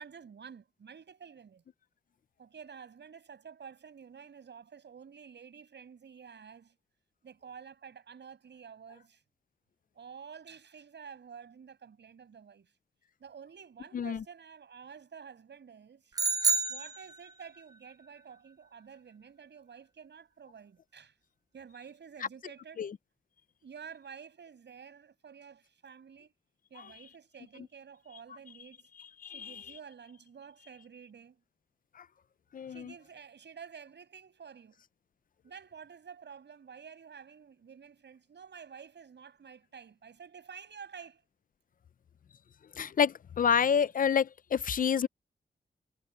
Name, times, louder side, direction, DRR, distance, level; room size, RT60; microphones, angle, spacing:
voice 1, 0.0-1.6 2.4-6.8 7.2-9.2 9.9-12.7 13.2-16.2 16.7-21.2 21.5-22.8 23.6-26.3 26.7-28.9 29.3-31.4 32.7-34.8 35.4-41.2, right 7 dB, 75° right, 6.2 m, -50 dB
voice 2, 13.9-14.2 22.8-23.0 29.2-29.5 32.0-32.1 32.5-32.9 42.8-45.1, left 7 dB, 50° left, 0.5 m, -28 dB
sound 1, 16.1-17.6, right 4 dB, 20° right, 0.5 m, -29 dB
wide cardioid pair, 165°, 18 cm